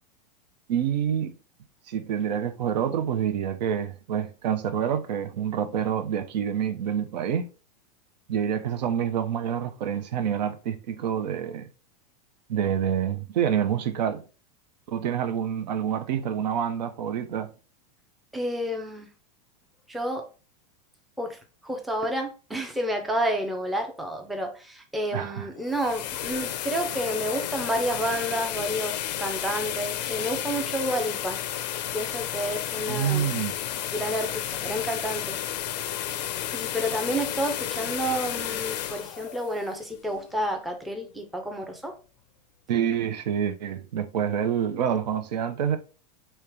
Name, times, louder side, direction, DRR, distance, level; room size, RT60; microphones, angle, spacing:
voice 1, 0.7-1.3 1.9-7.5 8.3-11.7 12.5-14.2 14.9-17.5 25.1-25.5 32.9-33.5 42.7-45.8, right 8 dB, 85° right, 0.6 m, -27 dB
voice 2, 18.3-19.1 19.9-20.3 21.2-31.4 31.9-33.3 33.9-35.4 36.5-42.0, equal, ahead, 0.4 m, -30 dB
sound 1, 25.5-40.4, left 11 dB, 80° left, 0.5 m, -32 dB
3.1 x 2.9 x 3.4 m
supercardioid pair, 135°, 21 cm